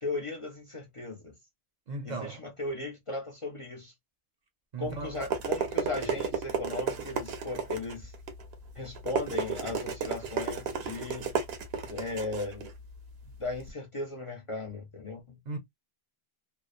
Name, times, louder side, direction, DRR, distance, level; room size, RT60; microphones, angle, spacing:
voice 1, 0.0-1.3 2.1-3.9 4.8-8.1 8.8-11.3 11.9-12.7 13.4-15.4, left 2 dB, 40° left, 0.5 m, -37 dB
voice 2, 1.9-2.4 4.7-5.2 15.5-15.6, right 3 dB, 50° right, 0.6 m, -37 dB
sound 1, 4.8-13.7, right 6 dB, 80° right, 0.9 m, -34 dB
2.8 x 2.0 x 2.3 m
omnidirectional pair, 1.0 m